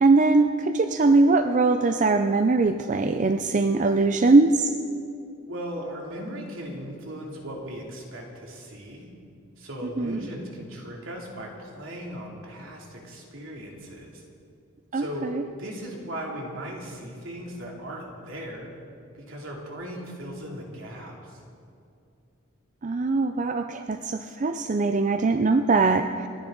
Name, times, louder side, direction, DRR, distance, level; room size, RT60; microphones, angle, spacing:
voice 1, 0.0-4.7 10.0-10.2 14.9-15.4 22.8-26.3, right 3 dB, 40° right, 7 dB, 0.5 m, -21 dB
voice 2, 5.5-9.1 9.6-14.2 14.9-15.3 15.6-18.7 19.1-21.4, equal, 75° right, -1 dB, 2.9 m, -37 dB
29.0 x 10.5 x 3.9 m, 2.5 s
head